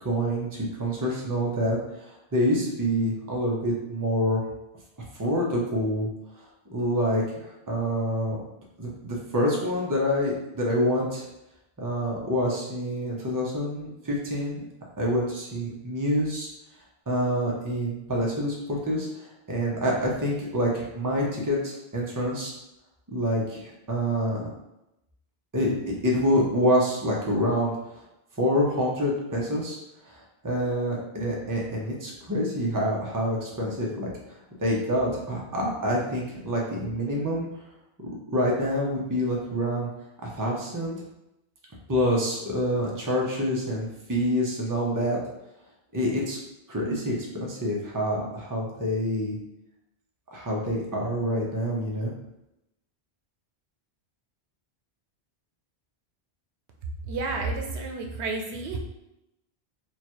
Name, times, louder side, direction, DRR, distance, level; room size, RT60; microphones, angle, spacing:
voice 1, 0.0-4.4 5.1-6.1 6.7-8.4 8.8-11.3 11.8-14.6 15.0-16.5 17.1-22.5 23.1-24.5 25.5-27.7 28.4-29.8 30.0-34.1 34.6-37.5 38.3-39.9 40.2-41.0 41.9-45.2 45.9-46.4 46.7-49.4 50.3-52.1, equal, 20° right, -3 dB, 0.7 m, -27 dB
voice 2, 57.0-58.8, right 3 dB, 85° right, 2 dB, 0.9 m, -31 dB
3.1 x 2.4 x 4.4 m, 0.88 s
omnidirectional pair, 1.1 m